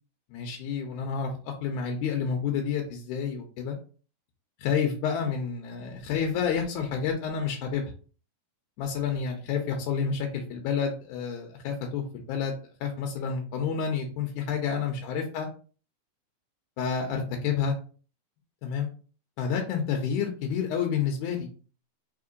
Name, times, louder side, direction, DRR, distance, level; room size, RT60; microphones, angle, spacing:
voice 1, 0.3-3.8 4.6-7.8 8.8-12.5 12.8-15.5 16.8-17.7 18.6-18.9 19.4-21.5, left 6 dB, 80° left, 2 dB, 2.0 m, -29 dB
4.3 x 3.6 x 2.5 m, 0.38 s
omnidirectional pair, 3.7 m